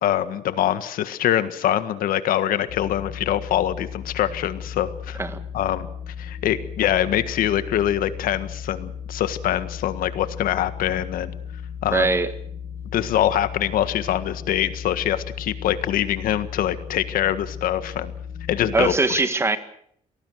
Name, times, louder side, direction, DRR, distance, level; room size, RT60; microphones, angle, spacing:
voice 1, 0.0-5.2 5.5-11.3 11.8-12.1 12.9-18.1 18.5-19.2, left 11 dB, 75° left, 12 dB, 1.7 m, -24 dB
sound 1, 2.7-19.0, left 7 dB, 55° left, 5.4 m, -36 dB
voice 2, 11.9-12.3 18.7-19.6, right 3 dB, 20° right, 10 dB, 1.7 m, -21 dB
25.0 x 19.0 x 6.5 m, 0.65 s
cardioid pair, 145°, 15 cm